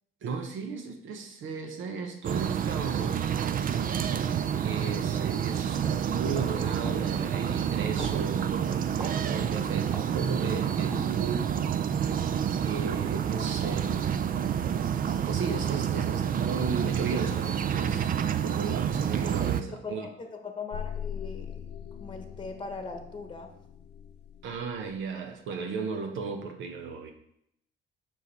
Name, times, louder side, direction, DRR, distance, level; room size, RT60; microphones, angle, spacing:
voice 1, 0.2-3.3 4.6-11.5 12.6-14.1 15.2-18.1 18.4-20.1 24.4-27.1, right 5 dB, 80° right, 5 dB, 1.0 m, -35 dB
sound 1, 2.2-19.6, right 8 dB, 45° right, 0.4 m, -28 dB
sound 2, 10.9-11.4, equal, 10° right, 2.1 m, -45 dB
voice 2, 19.7-21.7 22.0-23.5, left 4 dB, 25° left, 5 dB, 1.0 m, -40 dB
sound 3, 20.7-25.0, left 8 dB, 60° left, 0.5 m, -41 dB
5.7 x 4.9 x 4.1 m, 0.73 s
cardioid pair, 90°, 20 cm